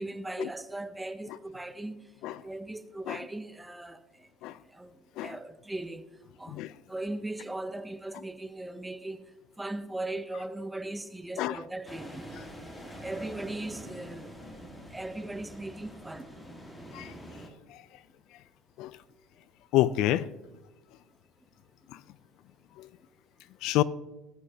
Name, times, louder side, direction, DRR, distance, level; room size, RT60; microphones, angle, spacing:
voice 1, 0.0-2.0 2.4-4.0 4.7-4.9 5.2-6.0 6.4-9.2 9.6-12.2 13.0-14.3 14.9-16.3, right 2 dB, 5° right, 0.6 m, -38 dB
sound 1, 11.9-17.5, equal, 10° left, 1.7 m, -45 dB
voice 2, 19.7-20.3 22.8-22.9 23.6-23.8, left 15 dB, 60° left, 0.4 m, -27 dB
18.5 x 8.2 x 2.8 m
cardioid pair, 145°, 0 cm